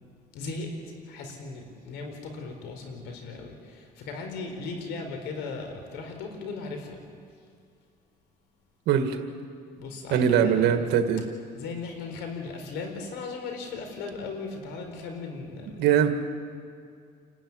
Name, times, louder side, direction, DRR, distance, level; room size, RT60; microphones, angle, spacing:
voice 1, 0.3-0.7 1.1-7.0 9.8-10.8 11.5-15.9, left 4 dB, 90° left, 4 dB, 4.4 m, -37 dB
voice 2, 8.9-9.2 10.1-11.2 15.8-16.1, right 8 dB, 85° right, 7 dB, 2.0 m, -21 dB
28.5 x 12.5 x 9.9 m, 2.3 s
cardioid pair, 110°, 17 cm